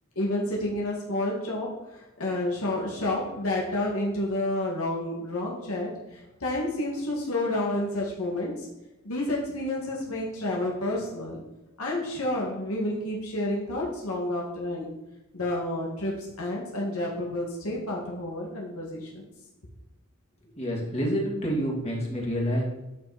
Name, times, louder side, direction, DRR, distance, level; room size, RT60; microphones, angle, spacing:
voice 1, 0.2-8.7 9.0-11.4 11.8-14.9 15.3-19.2, left 1 dB, 70° left, -3 dB, 2.3 m, -30 dB
voice 2, 20.6-22.6, equal, 30° left, -2 dB, 2.6 m, -28 dB
12.5 x 6.1 x 4.3 m, 0.98 s
head